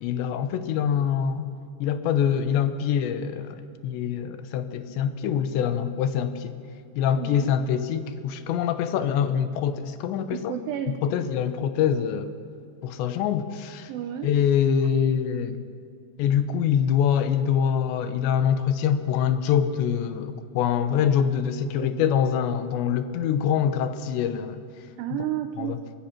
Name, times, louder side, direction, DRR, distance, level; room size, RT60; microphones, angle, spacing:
voice 1, 0.0-1.5 1.8-6.6 7.0-10.5 10.9-12.3 12.8-13.9 14.2-15.6 16.2-24.6 25.6-25.8, left 8 dB, 80° left, 10 dB, 3.1 m, -24 dB
voice 2, 7.1-7.5 10.3-11.0 13.9-14.3 21.7-21.9 25.0-25.8, right 10 dB, 85° right, 8 dB, 2.0 m, -32 dB
23.5 x 21.5 x 6.0 m, 2.3 s
omnidirectional pair, 5.2 m